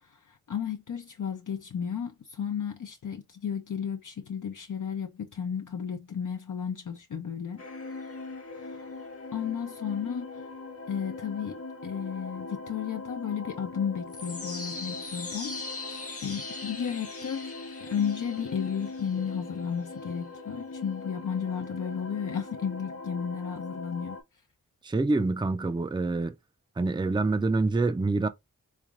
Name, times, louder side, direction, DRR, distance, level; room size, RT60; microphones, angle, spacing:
voice 1, 0.0-7.6 8.5-8.9 9.3-10.4 10.9-17.5 17.8-24.2, left 7 dB, 65° left, 0.6 m, -33 dB
sound 1, 7.6-24.2, left 3 dB, 40° left, 1.0 m, -40 dB
voice 2, 24.8-26.3 26.8-28.3, right 3 dB, 15° right, 0.5 m, -26 dB
3.5 x 3.3 x 2.4 m
wide cardioid pair, 45°, 34 cm